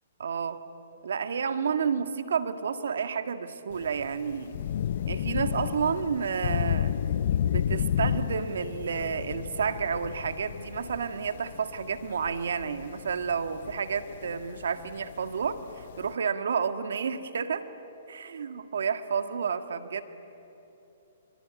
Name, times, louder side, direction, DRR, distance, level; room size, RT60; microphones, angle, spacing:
voice 1, 0.2-0.6 1.0-4.6 5.1-7.0 7.4-17.6 18.1-20.0, right 6 dB, 75° right, 9 dB, 1.8 m, -30 dB
Thunder / Rain, 3.7-16.1, left 9 dB, 60° left, 0.7 m, -32 dB
24.5 x 24.5 x 9.5 m, 3.0 s
hypercardioid pair, 140°, 0 cm